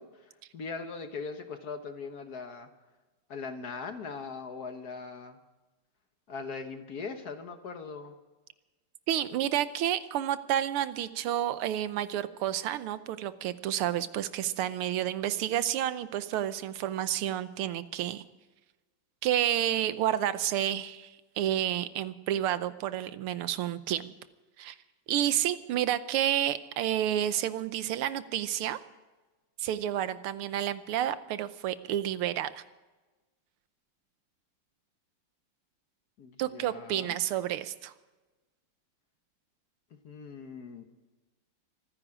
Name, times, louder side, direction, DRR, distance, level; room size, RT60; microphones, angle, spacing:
voice 1, 0.0-2.7 3.3-5.4 6.3-8.2 36.2-37.1 40.0-40.8, left 4 dB, 50° left, 7 dB, 1.4 m, -40 dB
voice 2, 9.1-18.2 19.2-24.1 24.6-24.8 25.1-28.8 29.6-32.6 36.4-37.9, right 11 dB, 85° right, 13 dB, 1.7 m, -30 dB
24.5 x 10.0 x 4.9 m, 1.2 s
omnidirectional pair, 2.4 m